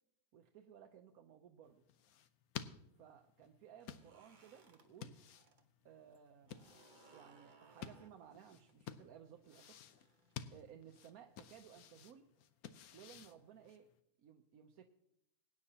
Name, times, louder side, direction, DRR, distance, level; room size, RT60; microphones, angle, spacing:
voice 1, 0.3-1.8 3.0-5.2 5.8-6.7 7.1-9.8 10.5-12.3 12.9-13.9 14.2-14.9, right 9 dB, 85° right, 4 dB, 1.2 m, -59 dB
sound 1, 1.6-14.0, left 9 dB, 85° left, 1.2 m, -53 dB
sound 2, 3.8-5.6 5.9-10.7, right 3 dB, 35° right, 1.1 m, -66 dB
22.0 x 9.7 x 2.8 m, 0.77 s
omnidirectional pair, 1.5 m